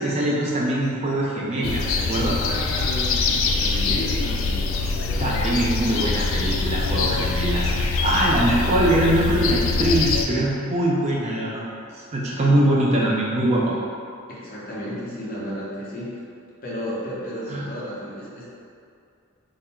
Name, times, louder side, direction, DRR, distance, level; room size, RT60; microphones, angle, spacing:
voice 1, 0.0-2.4 5.2-11.7 11.9-13.8 17.5-17.7, right 1 dB, 30° right, -4 dB, 0.4 m, -22 dB
sound 1, 1.6-10.3, left 4 dB, 65° left, 0.3 m, -24 dB
voice 2, 2.1-5.3 8.1-8.3 12.4-12.6 14.3-16.1 16.6-18.5, equal, 40° left, -7 dB, 0.8 m, -33 dB
3.6 x 2.1 x 4.2 m, 2.4 s
head